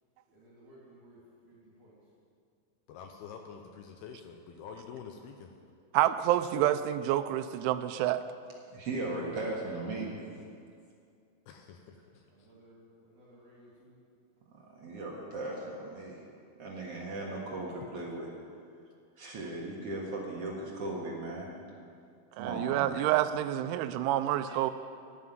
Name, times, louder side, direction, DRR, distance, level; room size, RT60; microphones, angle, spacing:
voice 1, 0.3-2.0 10.0-10.3 12.3-14.0, right 1 dB, 45° right, -6 dB, 3.4 m, -58 dB
voice 2, 2.9-5.5 11.5-12.5, left 6 dB, 85° left, 4 dB, 2.3 m, -47 dB
voice 3, 5.9-8.2 22.4-24.7, right 13 dB, 85° right, 11 dB, 3.0 m, -28 dB
voice 4, 8.7-10.1 14.7-16.2 16.6-18.3 19.2-21.5 22.4-22.8 24.5-24.6, right 2 dB, 65° right, -3 dB, 1.4 m, -37 dB
12.0 x 9.5 x 9.3 m, 2.3 s
omnidirectional pair, 5.4 m